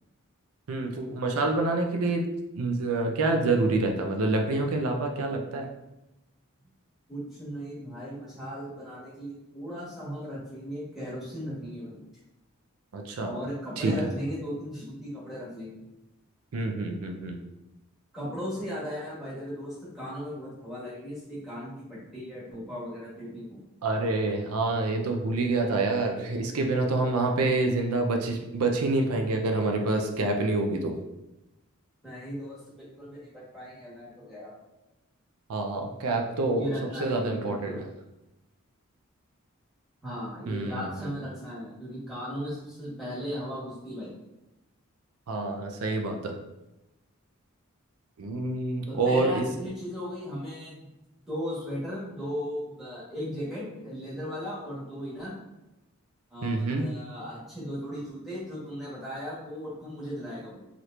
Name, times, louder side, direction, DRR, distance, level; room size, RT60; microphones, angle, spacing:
voice 1, 0.7-2.3 2.5-5.7 12.9-13.3 13.8-14.0 16.5-17.4 23.8-31.0 35.5-36.7 37.0-37.7 40.5-41.1 45.3-46.4 48.2-49.5 56.4-56.8, right 2 dB, 90° right, 3 dB, 0.5 m, -27 dB
voice 2, 7.1-12.0 13.2-15.8 18.1-23.6 32.0-34.5 36.6-37.9 40.0-44.1 48.9-50.9 51.3-55.4 56.3-60.7, equal, ahead, -9 dB, 1.1 m, -37 dB
2.9 x 2.5 x 3.2 m, 0.95 s
head